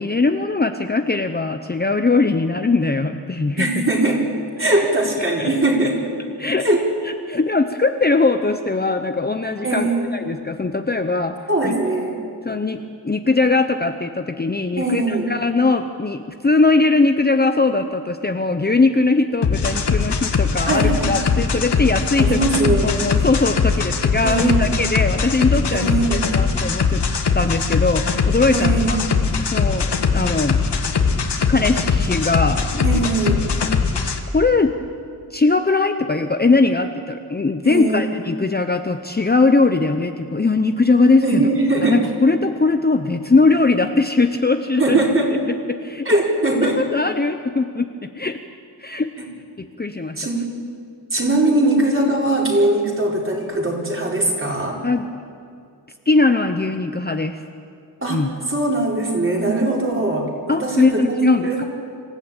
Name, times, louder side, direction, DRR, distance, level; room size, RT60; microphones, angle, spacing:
voice 1, 0.0-3.8 5.4-5.5 6.4-6.7 7.0-11.4 11.6-11.7 12.4-22.4 22.8-27.0 27.3-29.0 29.5-30.6 31.5-32.9 34.3-34.7 35.3-41.5 41.8-45.0 45.7-46.1 46.5-48.4 48.8-49.1 49.6-50.2 54.8-55.1 56.1-57.4 58.1-58.3 60.5-61.6, left 3 dB, 25° left, 6 dB, 0.8 m, -20 dB
voice 2, 3.6-4.2 4.6-6.0 6.6-6.9 9.6-10.1 11.5-12.2 14.8-15.3 20.7-21.3 22.2-23.0 24.2-24.7 25.7-26.2 28.5-29.0 32.8-33.4 37.6-38.0 41.2-42.0 44.8-45.3 46.0-46.8 50.2-50.5 51.1-54.8 58.0-61.6, right 2 dB, 30° right, -2 dB, 4.6 m, -20 dB
sound 1, 19.4-34.2, left 5 dB, 70° left, 1.8 m, -21 dB
26.5 x 15.0 x 9.0 m, 2.3 s
wide cardioid pair, 120°, 41 cm